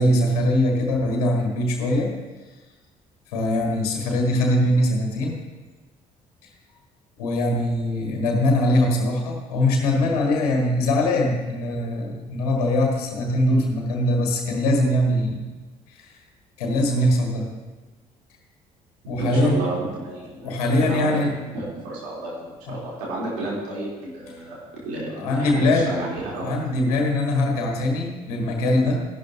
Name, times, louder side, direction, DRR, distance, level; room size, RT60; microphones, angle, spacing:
voice 1, 0.0-2.1 3.3-5.4 7.2-15.5 15.9-16.2 16.6-17.5 19.0-19.6 20.4-21.4 22.7-22.8 25.2-25.9 26.4-29.1, left 1 dB, 70° left, 1 dB, 1.6 m, -22 dB
voice 2, 19.2-19.8 20.0-24.6 24.8-26.5, right 2 dB, 65° right, -6 dB, 3.9 m, -31 dB
13.5 x 12.0 x 3.0 m, 1.2 s
figure-of-eight pair, 50°, 20 cm